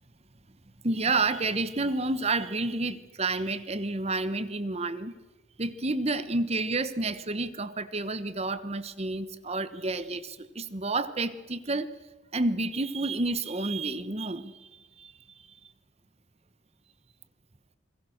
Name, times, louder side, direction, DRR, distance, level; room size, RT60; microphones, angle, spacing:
voice 1, 0.8-5.1 5.6-11.9 12.3-14.7 15.0-15.1, right 2 dB, 35° right, 13 dB, 1.1 m, -30 dB
27.5 x 21.0 x 6.5 m, 1.2 s
head